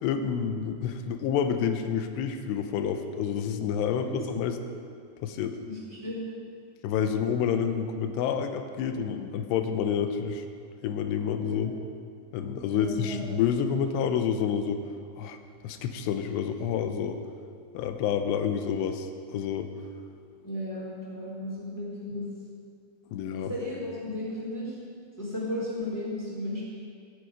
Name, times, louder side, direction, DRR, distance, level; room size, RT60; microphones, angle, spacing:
voice 1, 0.0-4.6 5.2-5.6 6.8-10.4 10.8-11.7 12.3-14.8 15.2-15.4 15.6-17.2 17.7-19.7 23.1-23.5, left 7 dB, 80° left, 7 dB, 2.8 m, -28 dB
voice 2, 5.6-6.2 11.4-11.7 12.7-13.2 20.4-22.2 23.3-24.7 25.2-26.6, left 1 dB, 5° left, -6 dB, 3.1 m, -34 dB
22.5 x 8.2 x 5.1 m, 2.3 s
omnidirectional pair, 5.3 m